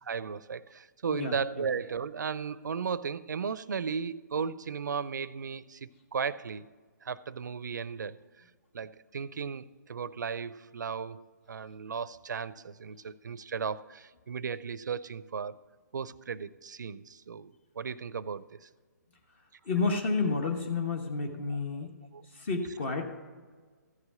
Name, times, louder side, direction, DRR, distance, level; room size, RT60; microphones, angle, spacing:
voice 1, 0.0-6.7 7.0-8.2 8.7-15.6 15.9-18.7 22.1-22.2, right 6 dB, 80° right, 18 dB, 0.5 m, -35 dB
voice 2, 1.1-1.7 19.6-21.9 22.2-23.1, left 4 dB, 40° left, 4 dB, 1.1 m, -31 dB
14.5 x 4.9 x 6.9 m, 1.5 s
hypercardioid pair, 150°, 10 cm